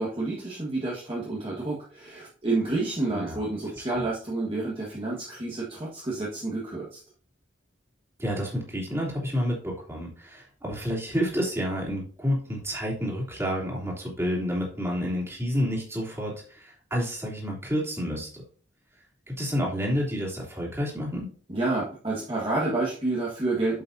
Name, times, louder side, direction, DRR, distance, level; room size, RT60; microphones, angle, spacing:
voice 1, 0.0-7.0 21.5-23.8, right 2 dB, 30° right, -5 dB, 1.7 m, -29 dB
voice 2, 3.1-3.4 3.9-4.0 8.2-18.4 19.3-21.3, equal, 15° right, -4 dB, 3.0 m, -29 dB
8.4 x 7.3 x 2.7 m, 0.43 s
head